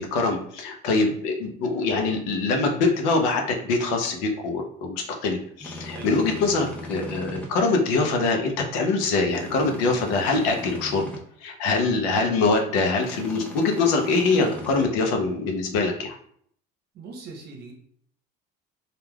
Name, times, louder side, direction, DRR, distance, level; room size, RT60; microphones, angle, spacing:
voice 1, 0.0-11.1 11.4-16.1, left 3 dB, 90° left, 3 dB, 0.6 m, -24 dB
sound 1, 5.6-7.5 9.3-11.2 13.0-14.9, left 1 dB, 5° left, 0.6 m, -38 dB
voice 2, 16.9-17.7, right 4 dB, 55° right, 1 dB, 0.8 m, -40 dB
3.2 x 2.3 x 2.2 m, 0.62 s
supercardioid pair, 105°, 20 cm